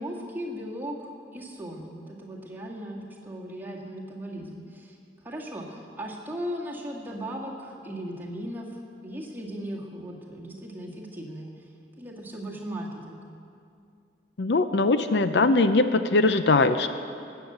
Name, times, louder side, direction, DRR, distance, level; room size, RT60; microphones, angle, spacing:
voice 1, 0.0-5.0 5.2-11.5 12.0-13.2, equal, 10° right, -4 dB, 1.9 m, -37 dB
voice 2, 14.4-16.9, left 3 dB, 65° left, 10 dB, 0.6 m, -21 dB
19.0 x 7.0 x 7.9 m, 2.4 s
head